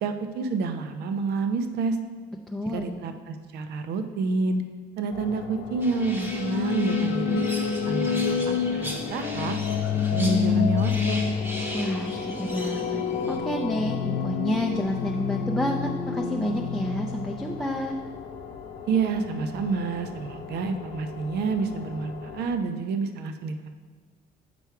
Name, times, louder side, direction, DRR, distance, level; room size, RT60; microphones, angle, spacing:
voice 1, 0.0-2.0 2.7-4.6 5.0-7.5 7.8-9.6 9.9-11.2 18.9-23.7, right 4 dB, 75° right, 8 dB, 0.6 m, -28 dB
voice 2, 2.5-2.9 11.7-13.0 13.3-17.9, equal, 5° left, 1 dB, 0.4 m, -29 dB
sound 1, 5.1-22.5, left 6 dB, 90° left, 0.7 m, -41 dB
sound 2, 5.8-13.4, equal, 15° right, 1.0 m, -38 dB
sound 3, 6.0-17.9, left 6 dB, 60° left, 0.4 m, -28 dB
7.0 x 4.6 x 4.6 m, 1.5 s
cardioid pair, 110°, 17 cm